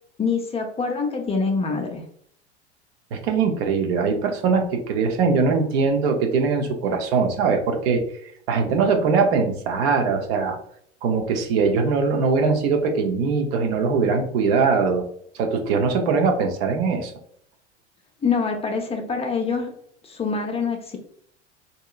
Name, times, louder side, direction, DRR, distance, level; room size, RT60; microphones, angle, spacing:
voice 1, 0.2-2.0 18.2-19.7 20.0-21.0, left 5 dB, 15° left, 2 dB, 0.5 m, -25 dB
voice 2, 3.1-8.0 8.5-10.6 11.0-15.0 15.3-17.1, right 5 dB, 60° right, 4 dB, 0.8 m, -21 dB
3.6 x 2.9 x 2.3 m, 0.64 s
hypercardioid pair, 90°, 35 cm